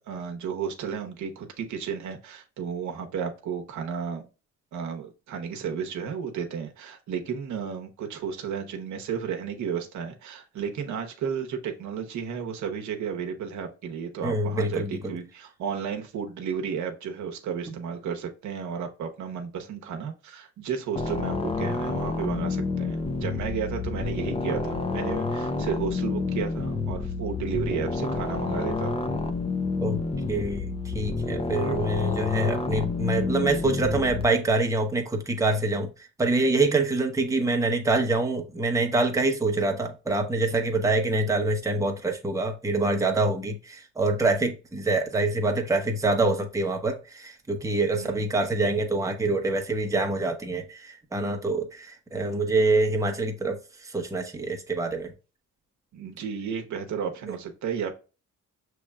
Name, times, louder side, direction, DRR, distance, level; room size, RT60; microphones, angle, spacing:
voice 1, 0.0-4.2 4.7-29.0 48.0-48.2 55.9-57.9, right 7 dB, 70° right, 0.9 m, -33 dB
voice 2, 14.2-15.1 29.8-30.0 30.3-35.9 36.2-55.1 57.3-57.4, right 2 dB, 10° right, 0.8 m, -25 dB
sound 1, 21.0-34.2, left 3 dB, 20° left, 0.6 m, -29 dB
6.1 x 3.1 x 2.3 m
cardioid pair, 90°, 30 cm